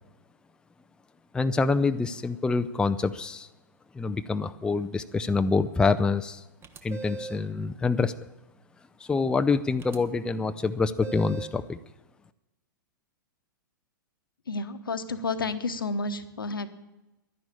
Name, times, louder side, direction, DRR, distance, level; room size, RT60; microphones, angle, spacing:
voice 1, 1.3-3.5 3.9-6.4 6.8-8.1 9.0-11.8, left 4 dB, 5° left, 9 dB, 0.5 m, -26 dB
sound 1, 6.6-7.5 9.8-10.0 11.0-11.6, right 4 dB, 20° right, 1.1 m, -39 dB
voice 2, 14.5-16.7, left 3 dB, 80° left, 9 dB, 1.1 m, -31 dB
11.5 x 10.5 x 8.6 m, 1.0 s
figure-of-eight pair, 110°, 11 cm